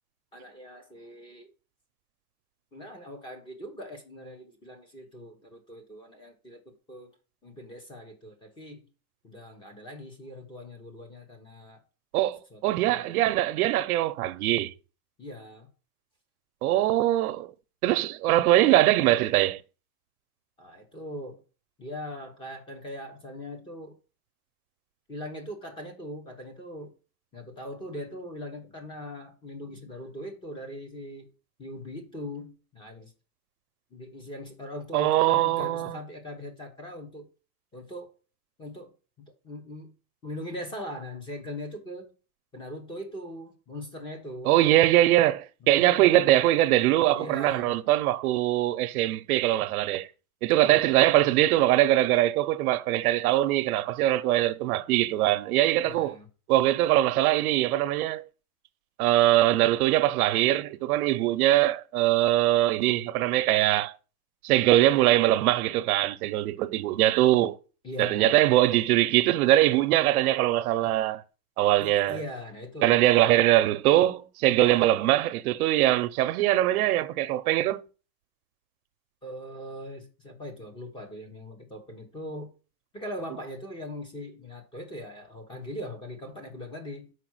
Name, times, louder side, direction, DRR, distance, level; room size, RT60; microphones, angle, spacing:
voice 1, 0.3-1.5 2.7-6.6 6.9-7.2 7.4-8.9 9.2-11.8 12.5-13.4 15.2-15.7 20.6-21.4 21.8-24.0 25.1-26.9 27.3-31.3 31.6-33.1 33.9-37.3 37.7-38.1 38.6-38.9 39.2-39.9 40.2-42.1 42.5-44.6 45.8-46.2 47.1-47.7 50.6-51.0 55.8-56.3 67.8-68.4 70.8-70.9 71.8-73.0 74.5-74.8 79.2-82.5 82.9-87.1, left 1 dB, 10° left, 0.9 m, -40 dB
voice 2, 12.1-14.7 16.6-17.5 17.8-19.6 34.9-36.0 44.4-50.1 50.4-56.2 56.5-58.3 59.0-63.9 64.4-67.6 68.0-71.2 71.6-72.2 72.8-77.8, right 14 dB, 85° right, 0.8 m, -22 dB
5.8 x 4.8 x 6.2 m
supercardioid pair, 180°, 43 cm